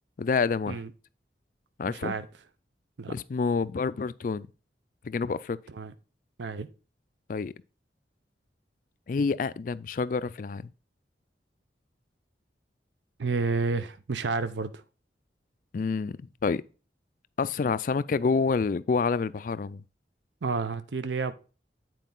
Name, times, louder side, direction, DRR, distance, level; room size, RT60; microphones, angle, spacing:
voice 1, 0.2-0.8 1.8-2.1 3.1-4.5 5.0-5.6 7.3-7.5 9.1-10.7 15.7-16.6 17.4-19.8, left 4 dB, 50° left, 0.3 m, -28 dB
voice 2, 1.8-2.2 3.0-3.1 5.7-5.9 6.4-6.7 13.2-14.7 20.4-21.3, right 4 dB, 85° right, 0.6 m, -30 dB
9.3 x 4.5 x 3.8 m
head